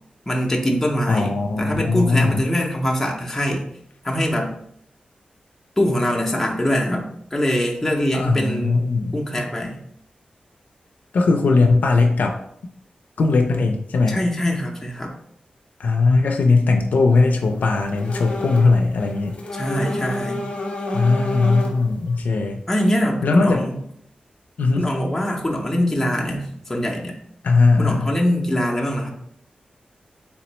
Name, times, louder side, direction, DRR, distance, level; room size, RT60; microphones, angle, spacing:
voice 1, 0.3-3.7 4.0-4.5 5.8-8.8 9.1-9.8 14.1-15.1 19.5-20.5 22.7-23.8 24.8-27.2 27.8-29.1, equal, 10° left, -1 dB, 0.5 m, -23 dB
voice 2, 1.1-2.4 8.1-9.1 11.1-12.4 13.2-14.2 15.8-19.4 20.9-22.6 23.2-23.6 24.6-24.8 27.4-28.1, left 3 dB, 80° left, 3 dB, 0.4 m, -19 dB
sound 1, 18.0-18.7 19.0-21.9, left 2 dB, 45° left, 0.8 m, -29 dB
3.4 x 3.0 x 3.0 m, 0.70 s
wide cardioid pair, 125°, 3 cm